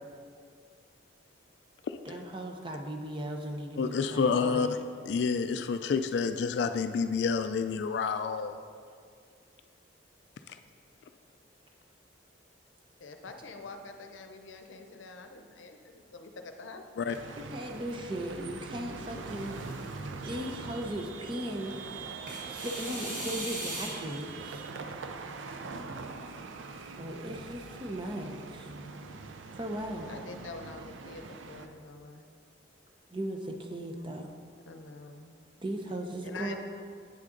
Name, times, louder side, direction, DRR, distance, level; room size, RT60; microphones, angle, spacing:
voice 1, 2.0-4.8 17.4-19.9 20.2-21.7 22.5-24.7 27.0-28.7 29.5-30.1 33.1-34.3 35.6-36.6, right 1 dB, 25° right, 3 dB, 0.6 m, -37 dB
voice 2, 3.8-4.7 5.1-8.6 17.0-17.2, left 5 dB, 65° left, 9 dB, 0.3 m, -28 dB
voice 3, 13.0-17.2 30.1-32.2 34.7-35.4 36.2-36.6, left 3 dB, 90° left, 6 dB, 0.7 m, -46 dB
sound 1, 17.1-31.7, right 4 dB, 90° right, 0.5 m, -42 dB
sound 2, 17.2-18.1 19.1-20.2 22.3-24.2, right 1 dB, 45° right, 1.3 m, -40 dB
8.5 x 6.2 x 3.8 m, 2.2 s
head